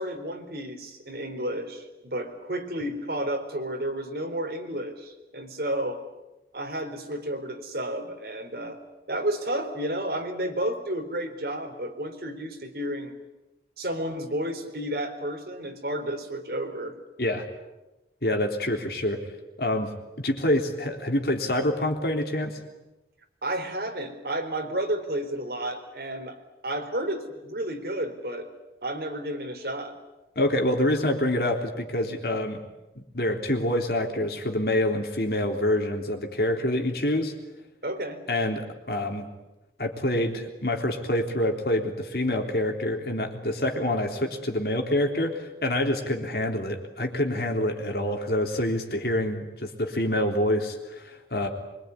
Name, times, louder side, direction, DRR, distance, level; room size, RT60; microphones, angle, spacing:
voice 1, 0.0-6.0 6.5-8.8 9.1-13.1 13.8-16.9 23.4-26.4 26.6-28.5 28.8-30.0 37.8-38.2, right 1 dB, 60° right, 4 dB, 4.1 m, -31 dB
voice 2, 18.2-19.2 19.6-19.9 20.2-22.6 30.3-32.6 32.9-37.3 38.3-39.3 39.8-51.5, left 1 dB, 60° left, 3 dB, 3.5 m, -26 dB
25.0 x 24.0 x 9.8 m, 1.0 s
head